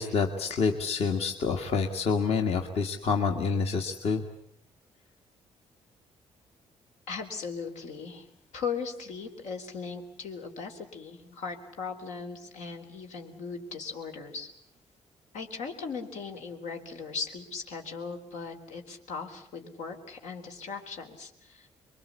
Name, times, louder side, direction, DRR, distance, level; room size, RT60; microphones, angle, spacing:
voice 1, 0.0-4.2, left 5 dB, 60° left, 4 dB, 2.0 m, -27 dB
voice 2, 7.1-8.3 8.5-14.5 15.3-21.7, left 5 dB, 90° left, 5 dB, 4.0 m, -38 dB
27.0 x 23.0 x 8.3 m, 0.67 s
cardioid pair, 140°, 12 cm